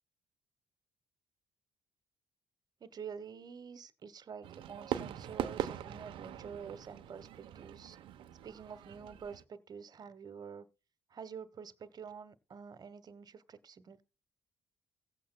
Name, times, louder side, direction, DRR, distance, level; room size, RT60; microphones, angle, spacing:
voice 1, 2.8-8.0 8.4-10.7 11.1-14.0, right 6 dB, 50° right, 1.1 m, -48 dB
Fireworks, 4.4-9.4, right 10 dB, 75° right, 0.8 m, -41 dB
17.0 x 8.7 x 2.2 m
supercardioid pair, 60°, 9 cm